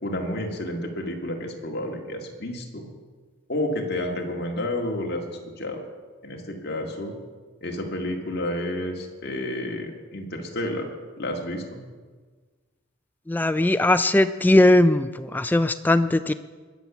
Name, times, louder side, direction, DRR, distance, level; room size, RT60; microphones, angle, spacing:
voice 1, 0.0-2.9 3.5-5.8 6.2-7.2 7.6-10.9 11.2-11.8, left 1 dB, 50° left, 1 dB, 1.9 m, -30 dB
voice 2, 13.3-16.3, left 1 dB, 10° left, 12 dB, 0.3 m, -19 dB
21.0 x 7.0 x 6.1 m, 1.4 s
head